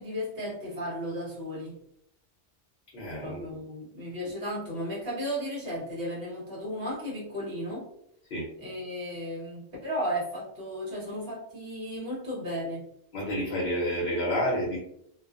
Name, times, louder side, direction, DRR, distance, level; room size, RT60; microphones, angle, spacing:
voice 1, 0.0-1.8 3.2-7.9 8.6-12.8, equal, 55° right, -6 dB, 1.3 m, -34 dB
voice 2, 2.9-3.4 8.3-8.5 13.1-14.8, equal, 55° left, -3 dB, 0.8 m, -29 dB
2.4 x 2.4 x 2.3 m, 0.74 s
omnidirectional pair, 1.2 m